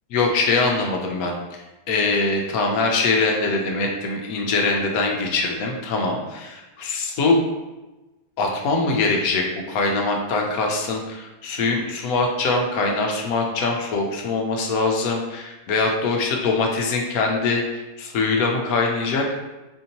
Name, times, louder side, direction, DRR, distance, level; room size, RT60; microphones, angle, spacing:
voice 1, 0.1-1.6 1.9-7.4 8.4-19.2, left 3 dB, 70° left, 1 dB, 1.0 m, -23 dB
4.4 x 2.6 x 2.8 m, 1.1 s
omnidirectional pair, 1.6 m